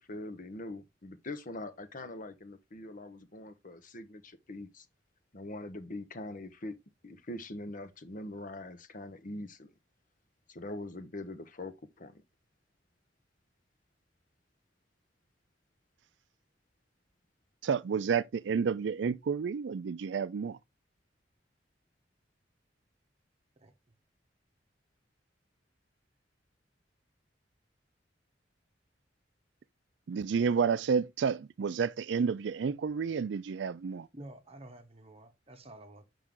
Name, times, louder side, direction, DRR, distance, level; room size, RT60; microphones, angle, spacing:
voice 1, 0.0-4.9 5.3-6.8 7.0-9.7 10.5-12.2, left 2 dB, 50° left, 0.9 m, -43 dB
voice 2, 17.6-20.6 30.1-34.1, right 6 dB, 75° right, 0.4 m, -30 dB
voice 3, 34.1-36.0, right 1 dB, 35° right, 1.2 m, -50 dB
7.3 x 5.5 x 3.6 m
head